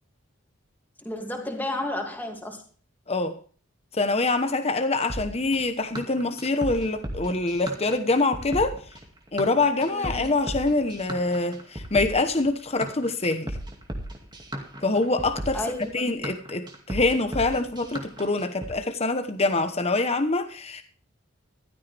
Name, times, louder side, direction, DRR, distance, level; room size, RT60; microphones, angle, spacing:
voice 1, 1.0-2.6 9.9-10.3 15.5-16.2, left 1 dB, 10° left, 2 dB, 2.6 m, -32 dB
voice 2, 3.1-3.4 3.9-8.8 9.3-13.6 14.8-15.6 15.9-20.8, left 3 dB, 30° left, 7 dB, 1.1 m, -25 dB
sound 1, 5.1-18.7, right 1 dB, 20° right, 2.3 m, -36 dB
15.0 x 13.0 x 3.5 m, 0.42 s
head